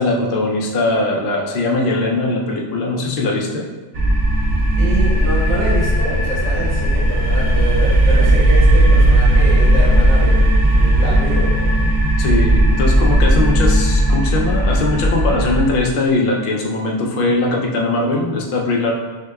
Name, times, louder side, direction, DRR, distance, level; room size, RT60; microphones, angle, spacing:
voice 1, 0.0-3.7 12.2-18.9, left 2 dB, 55° left, 0 dB, 0.7 m, -20 dB
sound 1, 3.9-15.7, right 1 dB, 65° right, 0.7 m, -15 dB
voice 2, 4.6-11.8, right 1 dB, 85° right, -5 dB, 1.3 m, -26 dB
6.3 x 2.2 x 2.2 m, 1.2 s
omnidirectional pair, 1.2 m